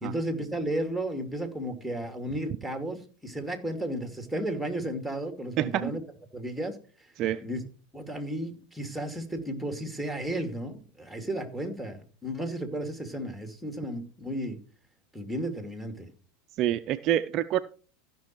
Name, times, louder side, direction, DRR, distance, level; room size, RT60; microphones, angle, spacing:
voice 1, 0.0-3.0 3.2-6.0 6.3-6.8 7.4-7.6 7.9-14.6 15.1-16.1, right 1 dB, ahead, 2.6 m, -33 dB
voice 2, 5.6-5.9 7.2-7.4 16.6-17.6, right 12 dB, 45° right, 0.5 m, -26 dB
14.5 x 6.2 x 4.6 m
hypercardioid pair, 90°, 0 cm